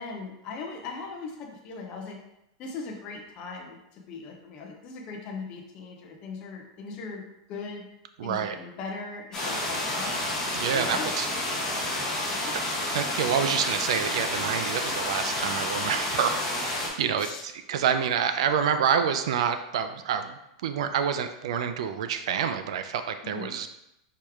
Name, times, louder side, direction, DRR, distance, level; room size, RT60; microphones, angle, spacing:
voice 1, 0.0-2.2 2.6-7.2 7.5-7.9 8.2-10.1 10.7-11.3 12.3-12.5 17.2-17.4 23.2-23.5, left 4 dB, 35° left, 1 dB, 0.7 m, -39 dB
voice 2, 8.2-8.5 10.5-11.3 12.9-23.7, right 7 dB, 75° right, 8 dB, 0.4 m, -28 dB
sound 1, 9.3-16.9, left 1 dB, 15° left, 1.2 m, -30 dB
4.7 x 3.2 x 3.5 m, 0.86 s
supercardioid pair, 160°, 3 cm